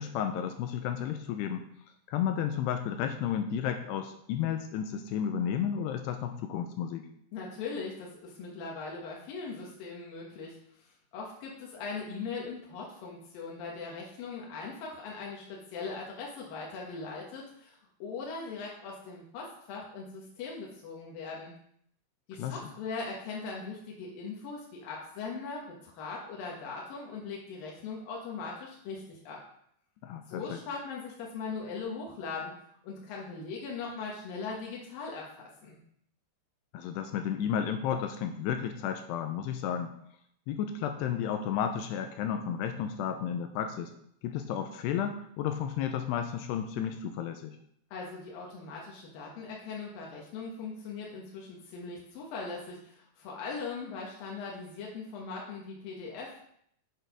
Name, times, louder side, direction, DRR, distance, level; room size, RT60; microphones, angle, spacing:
voice 1, 0.0-1.7 2.1-7.1 22.4-22.6 30.0-30.6 36.7-39.9 40.5-43.9 44.2-47.6, left 8 dB, 80° left, 6 dB, 2.5 m, -32 dB
voice 2, 7.3-10.9 11.1-21.5 22.3-29.4 30.3-32.5 32.8-35.8 47.9-56.3, left 4 dB, 65° left, -2 dB, 2.6 m, -40 dB
7.9 x 6.5 x 5.3 m, 0.69 s
omnidirectional pair, 5.2 m